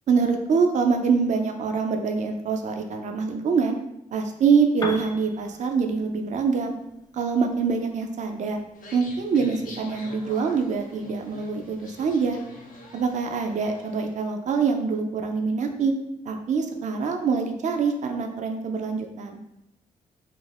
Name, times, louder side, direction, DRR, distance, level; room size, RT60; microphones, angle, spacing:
voice 1, 0.1-3.8 4.1-6.7 7.1-8.6 8.9-12.4 12.9-15.9 16.3-19.4, right 5 dB, 55° right, 4 dB, 0.4 m, -24 dB
Piano, 4.7-12.5, left 2 dB, 25° left, 0.4 m, -44 dB
sound 1, 8.7-14.1, left 2 dB, 65° left, 0.6 m, -45 dB
2.5 x 2.1 x 3.2 m, 0.84 s
supercardioid pair, 55°, 15 cm